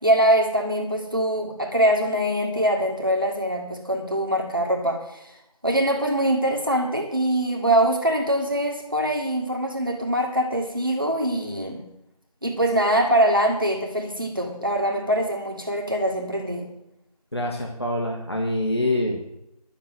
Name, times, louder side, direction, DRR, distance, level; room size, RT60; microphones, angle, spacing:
voice 1, 0.0-5.3 5.6-11.8 12.4-16.6, right 1 dB, 35° right, 1 dB, 2.1 m, -23 dB
voice 2, 17.3-19.2, left 1 dB, 40° left, 0 dB, 1.8 m, -25 dB
12.0 x 7.5 x 8.1 m, 0.84 s
figure-of-eight pair, 180°, 20 cm